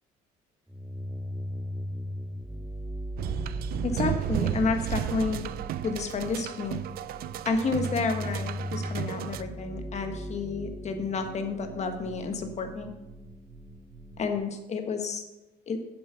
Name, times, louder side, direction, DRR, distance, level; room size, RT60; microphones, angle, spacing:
sound 1, 0.7-14.4, equal, 5° right, 0.7 m, -39 dB
sound 2, 3.2-9.4, right 11 dB, 65° right, 0.4 m, -33 dB
voice 1, 3.8-5.5 5.8-6.8 7.4-12.9 14.2-15.2 15.7-15.8, left 4 dB, 40° left, 6 dB, 1.2 m, -30 dB
7.7 x 7.1 x 5.6 m, 1.0 s
cardioid pair, 110°, 17 cm